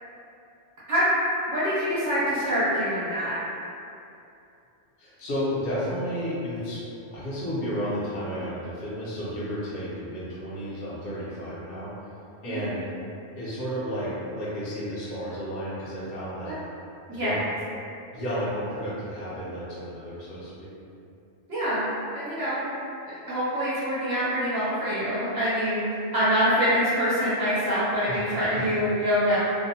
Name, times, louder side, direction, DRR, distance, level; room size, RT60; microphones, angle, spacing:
voice 1, 1.5-3.4 12.4-12.7 17.1-17.3 21.5-21.9 22.1-22.7 23.0-29.4, equal, 55° right, -12 dB, 0.9 m, -25 dB
voice 2, 5.0-6.8 7.1-11.9 12.4-12.9 13.4-16.6 17.1-17.4 18.1-20.7 28.1-28.2, equal, 60° left, -9 dB, 0.8 m, -32 dB
2.6 x 2.0 x 2.7 m, 2.7 s
omnidirectional pair, 1.2 m